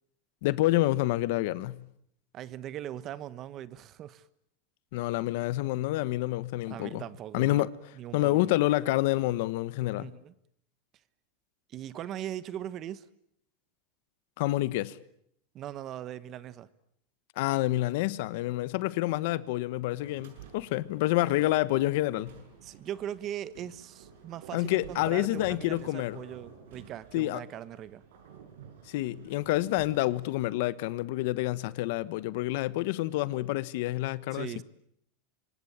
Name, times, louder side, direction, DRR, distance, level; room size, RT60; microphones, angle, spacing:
voice 1, 0.4-1.8 4.9-7.0 7.3-7.7 8.1-10.1 14.4-15.0 17.4-22.3 24.5-26.2 27.1-27.4 28.9-34.6, left 17 dB, 65° left, 1.2 m, -28 dB
voice 2, 2.3-4.2 6.7-7.6 7.9-8.5 9.9-10.3 11.7-13.1 15.5-16.7 22.6-28.0 34.3-34.6, right 11 dB, 35° right, 1.2 m, -40 dB
sound 1, 19.9-30.5, right 7 dB, 85° right, 7.1 m, -52 dB
26.0 x 23.5 x 8.7 m
supercardioid pair, 145°, 0 cm